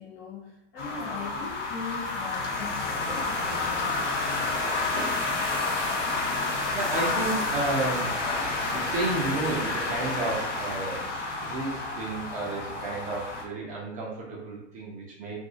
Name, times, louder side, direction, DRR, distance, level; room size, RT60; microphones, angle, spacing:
voice 1, 0.0-4.6, left 4 dB, 30° left, -2 dB, 0.6 m, -40 dB
sound 1, 0.8-13.4, left 3 dB, 80° left, 0.8 m, -30 dB
sound 2, 2.4-8.5, left 3 dB, 45° left, 1.1 m, -44 dB
voice 2, 6.3-8.1 8.6-11.1 11.4-15.3, right 2 dB, 20° right, -3 dB, 0.6 m, -32 dB
2.6 x 2.5 x 2.6 m, 0.85 s
figure-of-eight pair, 100°, 36 cm